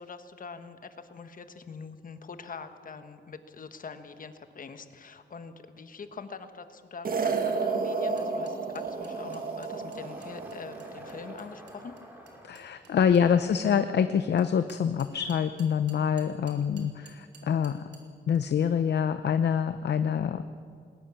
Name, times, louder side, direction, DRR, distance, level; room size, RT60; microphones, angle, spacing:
voice 1, 0.0-11.9 13.1-13.2 13.5-13.8, left 5 dB, 50° left, 9 dB, 1.3 m, -44 dB
sound 1, 7.0-11.5, right 4 dB, 50° right, 2.0 m, -32 dB
sound 2, 8.2-13.3 14.4-18.0, right 5 dB, 70° right, 3.3 m, -55 dB
Fill (with liquid), 8.8-14.2, equal, 10° right, 4.0 m, -52 dB
voice 2, 12.4-17.9 18.3-20.4, left 7 dB, 65° left, 10 dB, 0.7 m, -26 dB
20.0 x 19.0 x 7.0 m, 2.3 s
wide cardioid pair, 145°, 19 cm